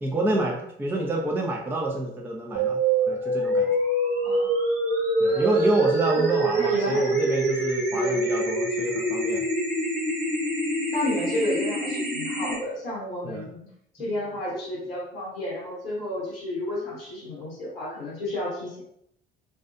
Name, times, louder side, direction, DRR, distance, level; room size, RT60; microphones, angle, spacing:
voice 1, 0.0-2.8 3.1-3.7 5.2-9.4 13.2-13.4 14.0-14.1, right 1 dB, 5° right, -1 dB, 0.4 m, -28 dB
sound 1, 2.6-12.6, right 2 dB, 55° right, 1.0 m, -25 dB
voice 2, 5.3-5.6 5.9-6.2 6.6-7.2 7.9-8.2 10.9-13.7 13.9-18.8, left 1 dB, 80° left, -6 dB, 0.7 m, -31 dB
2.7 x 2.3 x 2.3 m, 0.73 s
figure-of-eight pair, 55°, 29 cm